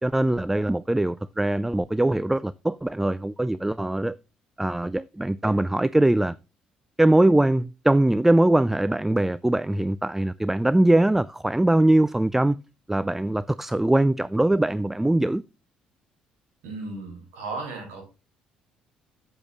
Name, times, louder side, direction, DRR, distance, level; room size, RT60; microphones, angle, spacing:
voice 1, 0.0-4.2 4.6-6.4 7.0-12.6 12.9-15.4, right 1 dB, 10° right, 0.3 m, -22 dB
voice 2, 16.6-18.0, right 3 dB, 70° right, 3.6 m, -35 dB
8.9 x 8.3 x 2.4 m
hypercardioid pair, 50°, 4 cm